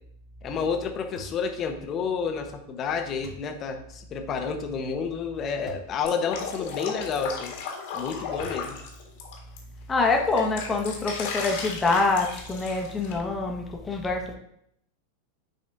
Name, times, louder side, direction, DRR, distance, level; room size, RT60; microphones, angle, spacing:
voice 1, 0.4-7.5 7.9-8.8, left 6 dB, 35° left, 5 dB, 1.0 m, -30 dB
sound 1, 1.1-1.5 3.2-3.5 5.6-5.9 6.6-6.7 8.4-8.9, right 1 dB, 35° right, 2.4 m, -44 dB
Drip, 6.0-9.6 10.0-13.1, left 5 dB, 60° left, 1.6 m, -35 dB
voice 2, 9.9-14.4, left 3 dB, 20° left, 1 dB, 1.2 m, -25 dB
10.0 x 4.1 x 2.6 m, 0.73 s
figure-of-eight pair, 90°, 0 cm